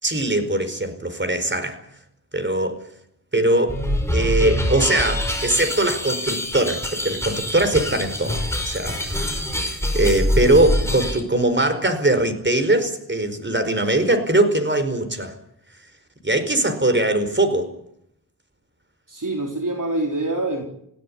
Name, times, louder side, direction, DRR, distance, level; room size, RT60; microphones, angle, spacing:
voice 1, 0.0-1.8 2.3-2.8 3.3-3.8 4.1-9.3 9.9-15.4 16.2-17.7, right 1 dB, 30° right, 9 dB, 4.8 m, -21 dB
sound 1, 3.7-11.2, left 1 dB, 5° left, 5.2 m, -25 dB
voice 2, 19.1-20.6, right 2 dB, 50° right, 2 dB, 3.8 m, -25 dB
27.5 x 16.5 x 10.0 m, 0.74 s
wide cardioid pair, 95°, 40 cm